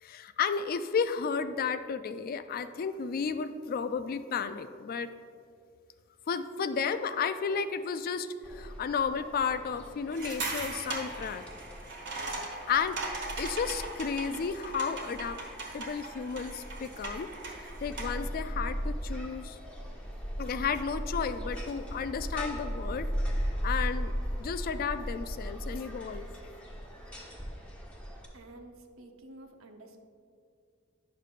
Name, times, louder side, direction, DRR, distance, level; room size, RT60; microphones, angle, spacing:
voice 1, 0.0-5.1 6.3-11.4 12.7-13.0 13.4-15.4 15.7-17.3 17.6-19.6 20.4-23.1 23.6-24.1 24.4-26.3, left 6 dB, 45° left, 11 dB, 0.3 m, -33 dB
sound 1, 8.4-28.3, equal, 5° left, 1.0 m, -38 dB
sound 2, 10.1-18.3, right 3 dB, 65° right, 1.4 m, -39 dB
voice 2, 28.3-30.0, right 2 dB, 85° right, 4 dB, 0.7 m, -50 dB
10.5 x 6.5 x 2.5 m, 2.3 s
head